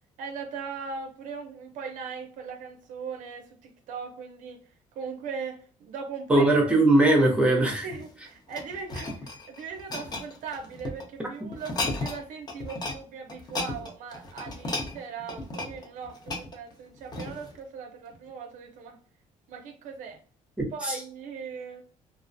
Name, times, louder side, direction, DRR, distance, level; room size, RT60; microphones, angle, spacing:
voice 1, 0.2-6.5 7.8-19.0 19.5-20.2 20.7-21.8, right 5 dB, 75° right, 4 dB, 0.4 m, -39 dB
voice 2, 6.3-7.9 20.6-21.0, right 2 dB, 10° right, -1 dB, 0.7 m, -20 dB
sound 1, 7.8-11.0 11.5-12.2 12.5-13.0 13.3-17.6 18.1-18.3, left 2 dB, 30° left, 0.6 m, -35 dB
2.4 x 2.1 x 2.5 m, 0.43 s
cardioid pair, 110°, 13 cm